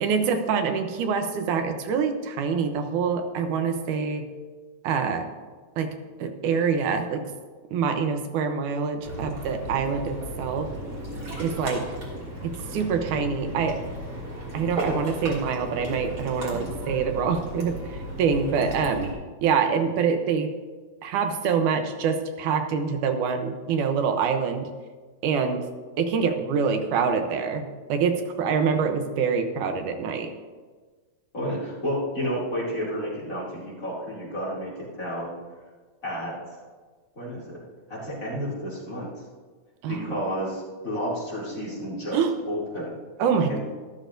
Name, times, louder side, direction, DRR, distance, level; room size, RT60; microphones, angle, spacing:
voice 1, 0.0-4.3 4.8-5.3 5.8-5.9 6.2-7.3 7.7-10.7 11.4-11.9 12.4-13.8 14.5-19.1 19.4-20.5 21.0-24.7 25.2-25.6 26.0-30.3 39.8-40.2 42.1-42.3 43.2-43.6, right 6 dB, 80° right, 6 dB, 2.3 m, -25 dB
Ocean, 9.0-19.1, right 1 dB, 35° right, 2.7 m, -35 dB
voice 2, 31.3-35.3 36.0-36.3 37.2-37.6 37.9-39.1 39.9-42.2 42.5-42.9 43.5-43.6, equal, 25° left, -7 dB, 2.9 m, -31 dB
13.0 x 13.0 x 2.6 m, 1.4 s
omnidirectional pair, 3.5 m